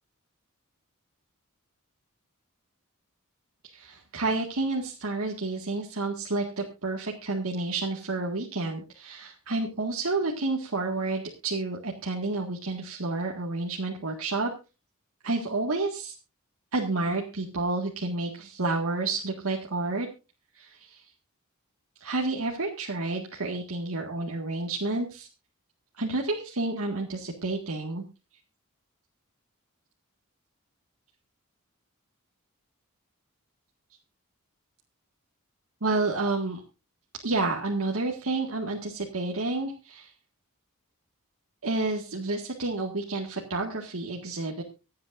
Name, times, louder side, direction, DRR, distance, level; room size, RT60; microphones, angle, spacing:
voice 1, 3.6-14.5 15.2-16.1 16.7-20.1 20.6-21.0 22.0-25.3 26.0-28.0 35.8-36.6 37.2-40.1 41.6-44.6, right 3 dB, 75° right, -1 dB, 1.9 m, -30 dB
25.0 x 8.7 x 2.6 m, 0.29 s
head